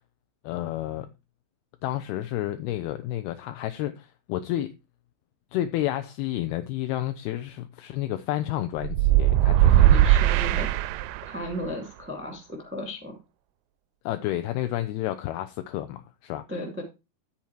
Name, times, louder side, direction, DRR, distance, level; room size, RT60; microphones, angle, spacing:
voice 1, 0.4-1.1 1.8-4.7 5.5-9.9 14.1-16.4, left 14 dB, 80° left, 2.5 m, -30 dB
sound 1, 8.8-11.5, right 13 dB, 80° right, 2.5 m, -19 dB
voice 2, 9.7-10.7 11.2-13.1 16.5-16.8, equal, 10° right, 0.6 m, -35 dB
13.0 x 4.4 x 4.6 m
omnidirectional pair, 4.9 m